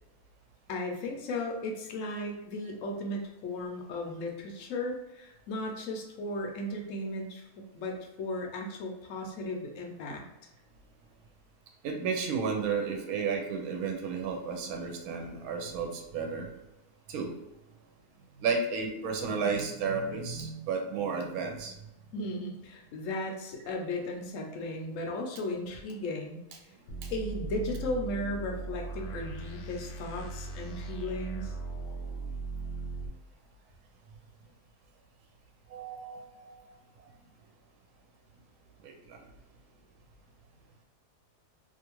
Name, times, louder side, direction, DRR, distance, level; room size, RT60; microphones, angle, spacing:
voice 1, 0.7-7.5 7.7-10.3 22.1-26.4 27.1-31.5, left 1 dB, 70° left, 1 dB, 0.8 m, -36 dB
voice 2, 11.8-16.5 17.1-17.3 18.4-21.8 26.9-27.1 35.7-37.1 38.8-39.2, right 5 dB, 70° right, 2 dB, 1.0 m, -33 dB
sound 1, 26.9-33.1, right 3 dB, 90° left, 1.2 m, -38 dB
2.7 x 2.4 x 2.9 m, 0.91 s
omnidirectional pair, 1.7 m